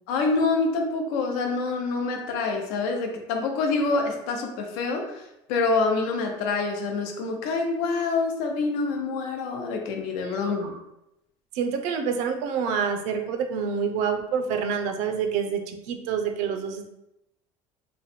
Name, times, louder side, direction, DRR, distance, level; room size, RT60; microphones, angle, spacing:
voice 1, 0.1-5.2 5.5-10.7, left 3 dB, 85° left, 3 dB, 0.7 m, -26 dB
voice 2, 10.2-10.7 11.5-16.9, right 6 dB, 65° right, 6 dB, 0.5 m, -27 dB
3.0 x 2.1 x 4.1 m, 0.85 s
cardioid pair, 170°, 13 cm